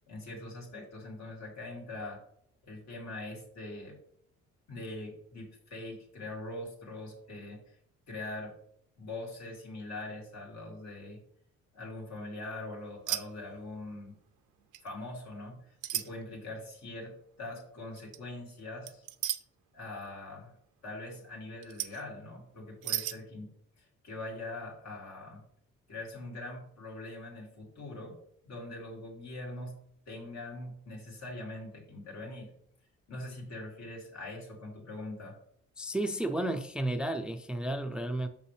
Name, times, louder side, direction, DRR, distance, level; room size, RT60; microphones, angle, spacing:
voice 1, 0.0-2.2 2.6-4.0 4.7-7.8 8.1-8.5 9.0-11.2 11.7-14.1 14.8-19.0 19.7-20.6 20.8-25.4 25.9-28.2 28.4-29.8 30.1-32.5 33.1-35.4, left 2 dB, 65° left, 2.7 m, -42 dB
sound 1, 13.1-13.2 13.5-13.9 14.7-14.9 15.8-16.1 18.0-18.2 18.9-19.4 21.6-22.0 22.8-23.2, right 14 dB, 80° right, 0.5 m, -33 dB
voice 2, 35.8-38.3, right 1 dB, 5° right, 0.4 m, -32 dB
6.3 x 5.5 x 3.3 m
cardioid pair, 90°, 30 cm